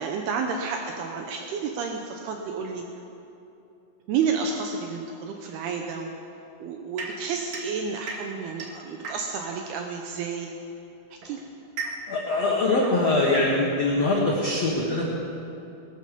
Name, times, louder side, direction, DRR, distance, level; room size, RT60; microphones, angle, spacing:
voice 1, 0.0-2.8 4.1-6.1 6.6-10.5 11.1-11.4, right 5 dB, 80° right, 3 dB, 2.3 m, -30 dB
sound 1, 7.0-9.6 10.6-14.0, right 4 dB, 55° right, 2.8 m, -38 dB
voice 2, 12.1-15.1, left 2 dB, 90° left, -3 dB, 1.4 m, -23 dB
20.5 x 13.0 x 5.2 m, 2.9 s
omnidirectional pair, 5.7 m